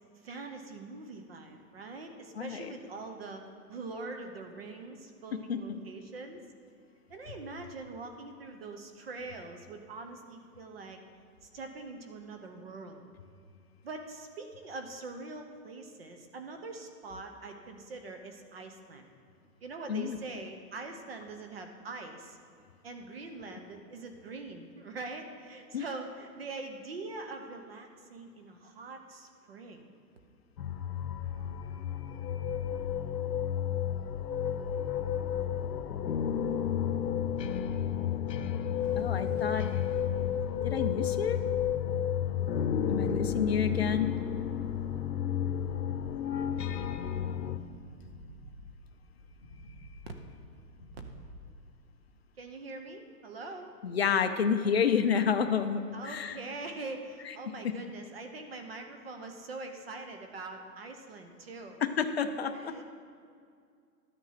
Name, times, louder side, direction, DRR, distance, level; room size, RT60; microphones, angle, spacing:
voice 1, 0.2-3.4 3.7-6.4 7.1-11.0 11.4-13.0 13.8-19.1 19.6-22.4 22.8-29.9 50.9-51.0 52.4-53.7 55.9-61.8 62.5-62.8, right 3 dB, 35° right, 5 dB, 0.9 m, -43 dB
voice 2, 2.4-2.7 5.5-5.8 19.9-20.2 25.7-25.8 39.0-39.7 40.6-41.4 42.9-44.1 53.8-56.4 61.8-62.7, left 7 dB, 40° left, 7 dB, 0.6 m, -29 dB
sound 1, 30.6-47.6, left 9 dB, 80° left, 0.9 m, -32 dB
sound 2, 34.7-51.3, left 1 dB, ahead, 0.6 m, -49 dB
12.5 x 9.4 x 5.7 m, 2.2 s
hypercardioid pair, 170°, 50 cm